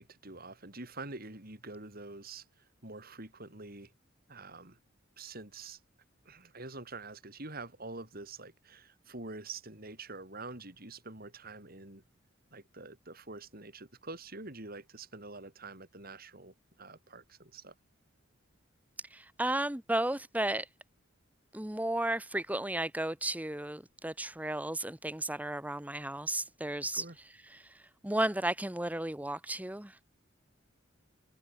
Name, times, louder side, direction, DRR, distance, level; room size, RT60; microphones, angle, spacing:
voice 1, 0.0-3.9 4.3-4.8 5.2-5.8 6.3-12.0 12.5-17.7 26.9-27.2, right 3 dB, 50° right, 5.4 m, -46 dB
voice 2, 19.0-20.7 21.5-27.1 27.5-30.0, right 1 dB, 10° right, 1.1 m, -34 dB
head